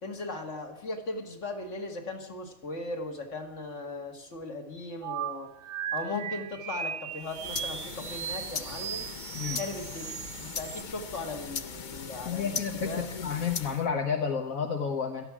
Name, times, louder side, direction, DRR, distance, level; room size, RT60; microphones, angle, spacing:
voice 1, 0.0-5.5 5.9-9.0 9.5-13.1, left 2 dB, 60° left, 4 dB, 2.4 m, -38 dB
sound 1, 5.0-10.8, right 9 dB, 75° right, 1.1 m, -37 dB
sound 2, 7.2-13.9, left 6 dB, 40° left, 0.8 m, -39 dB
voice 2, 12.2-15.2, left 6 dB, 80° left, 3 dB, 1.7 m, -31 dB
17.5 x 13.0 x 6.2 m, 0.91 s
omnidirectional pair, 1.5 m